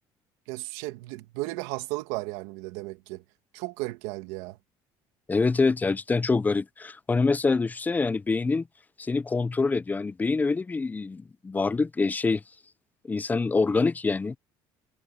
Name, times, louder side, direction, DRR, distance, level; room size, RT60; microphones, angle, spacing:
voice 1, 0.5-3.2 3.5-4.6, right 21 dB, 85° right, 1.8 m, -35 dB
voice 2, 5.3-8.7 9.0-12.4 13.1-14.4, left 4 dB, 15° left, 0.6 m, -25 dB
supercardioid pair, 105°, 10 cm